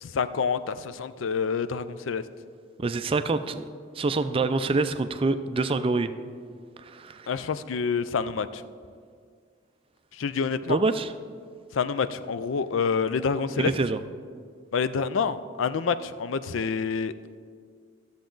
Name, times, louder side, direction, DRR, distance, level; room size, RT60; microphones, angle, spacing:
voice 1, 0.0-2.2 7.3-8.6 10.2-10.8 11.7-13.7 14.7-17.4, left 5 dB, 80° left, 13 dB, 0.4 m, -27 dB
voice 2, 2.8-6.1 6.8-7.3 10.7-11.1 13.6-14.0, right 3 dB, 30° right, 11 dB, 0.3 m, -26 dB
13.5 x 7.2 x 3.9 m, 2.1 s
head